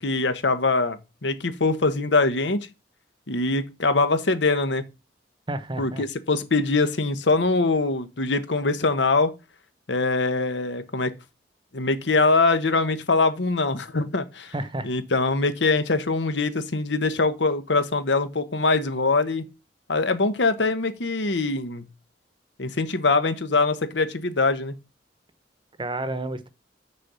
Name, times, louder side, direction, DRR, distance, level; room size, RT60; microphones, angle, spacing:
voice 1, 0.0-2.7 3.3-4.8 5.8-9.3 9.9-11.1 11.7-14.5 14.8-19.4 19.9-21.9 22.6-24.8, left 3 dB, 85° left, 1.1 m, -23 dB
voice 2, 5.5-6.1 14.5-14.9 25.8-26.5, right 1 dB, 30° right, 0.9 m, -30 dB
6.7 x 5.2 x 6.9 m
head